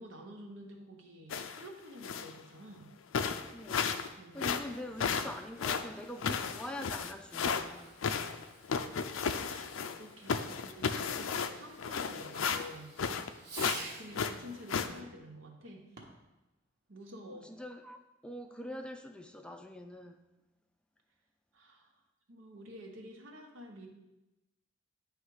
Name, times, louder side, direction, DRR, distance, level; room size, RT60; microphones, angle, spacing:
voice 1, 0.0-2.9 4.2-4.5 7.8-8.0 9.4-13.2 13.6-15.8 16.9-17.5 21.5-21.9 22.3-23.9, equal, 80° right, 2 dB, 1.1 m, -49 dB
sound 1, 1.3-1.7 2.0-2.4 2.8-2.9 3.1-4.1 4.4-7.6 8.0-10.0 10.3-13.3 13.6-13.8 14.1-14.9, left 6 dB, 85° left, 0.4 m, -33 dB
voice 2, 3.5-3.9 4.3-8.0 17.3-20.2, left 1 dB, 5° left, 5 dB, 0.4 m, -44 dB
Fireworks, 7.1-14.2 15.9-16.3, right 3 dB, 55° right, 1.1 m, -50 dB
9.4 x 3.2 x 4.8 m, 0.99 s
head